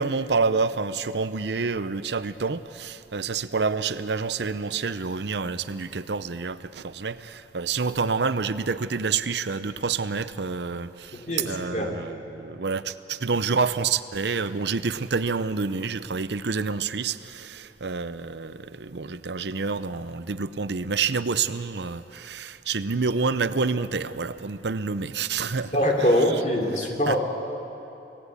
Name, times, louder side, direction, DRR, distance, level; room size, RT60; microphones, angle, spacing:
voice 1, 0.0-25.8 27.1-27.2, right 4 dB, 75° right, 0.7 m, -28 dB
voice 2, 11.1-11.9 25.7-27.2, equal, 40° left, 3.1 m, -23 dB
24.5 x 18.0 x 8.4 m
head